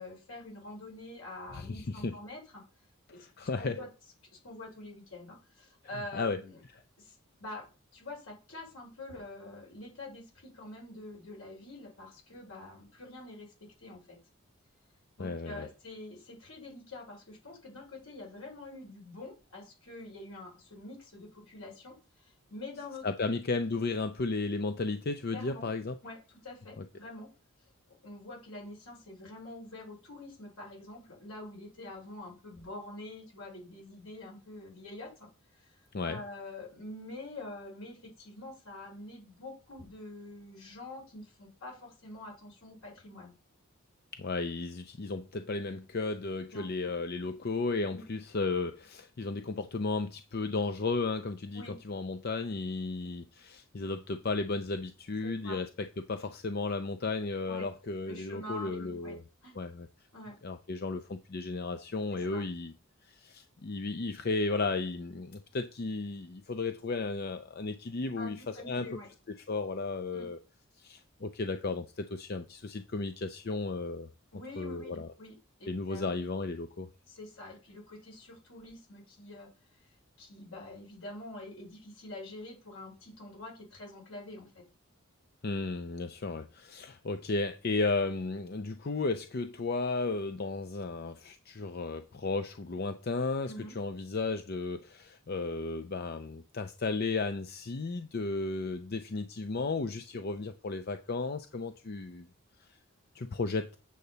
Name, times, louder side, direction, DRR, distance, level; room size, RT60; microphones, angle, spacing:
voice 1, 0.0-2.6 3.1-3.9 4.3-6.6 7.0-14.2 15.2-23.3 25.3-25.7 26.0-26.2 26.4-27.3 28.0-35.3 35.6-35.7 36.0-43.3 46.5-46.9 47.9-48.0 51.5-51.8 55.2-55.6 57.5-57.7 58.1-59.2 59.4-59.6 60.1-60.4 62.1-62.4 68.2-69.1 70.1-70.3 74.3-75.3 75.6-76.1 77.1-79.5 80.2-84.6 93.4-93.7, left 2 dB, 80° left, 5.1 m, -46 dB
voice 2, 1.5-2.1 3.2-3.8 5.9-6.4 15.2-15.7 23.0-25.9 26.8-26.9 35.9-36.2 44.1-59.2 59.6-59.9 60.4-62.7 63.0-68.9 69.5-70.4 70.8-74.1 74.6-75.1 75.7-76.9 85.4-102.3 102.6-102.7 103.1-103.8, left 3 dB, 45° left, 0.5 m, -34 dB
8.5 x 6.8 x 4.0 m
head